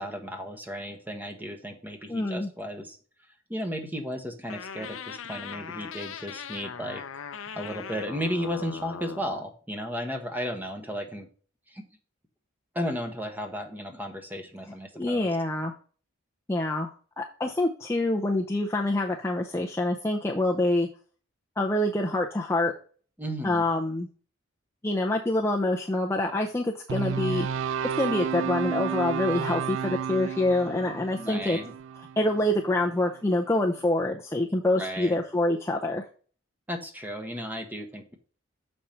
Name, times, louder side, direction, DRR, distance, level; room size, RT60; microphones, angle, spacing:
voice 1, 0.0-3.0 3.5-7.0 7.3-11.3 11.7-11.8 12.7-15.3 23.2-23.6 31.2-31.7 34.8-35.2 36.7-38.1, equal, 10° right, 5 dB, 1.1 m, -34 dB
voice 2, 2.1-2.5 14.9-15.7 16.5-16.9 17.2-20.9 21.6-22.7 23.4-24.1 24.8-27.5 27.8-31.6 32.2-36.1, left 1 dB, 10° left, 0 dB, 0.5 m, -26 dB
sound 1, 4.5-9.4, left 6 dB, 65° left, 0.6 m, -40 dB
sound 2, 26.9-33.1, right 7 dB, 60° right, 0.3 m, -32 dB
6.8 x 5.3 x 4.4 m, 0.41 s
head